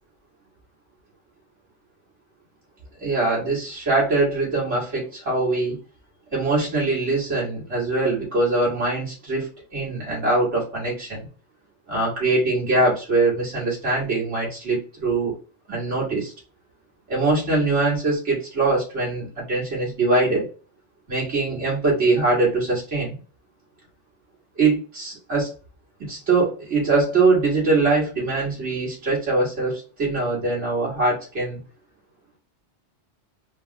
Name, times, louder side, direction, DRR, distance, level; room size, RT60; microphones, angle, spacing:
voice 1, 3.0-5.8 6.3-11.3 11.9-15.4 15.7-16.3 17.1-20.5 21.1-23.2 24.6-25.5 26.0-31.6, right 3 dB, 85° right, -5 dB, 2.5 m, -22 dB
4.4 x 3.0 x 2.4 m, 0.35 s
omnidirectional pair, 1.2 m